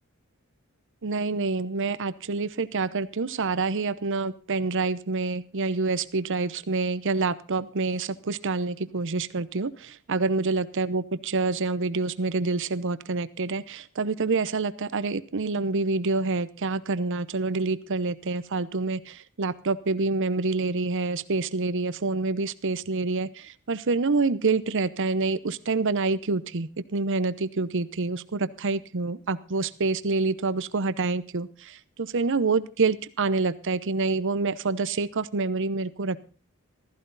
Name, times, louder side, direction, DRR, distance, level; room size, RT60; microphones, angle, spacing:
voice 1, 1.0-36.2, right 3 dB, 60° right, 15 dB, 0.8 m, -27 dB
15.0 x 14.5 x 4.0 m, 0.38 s
head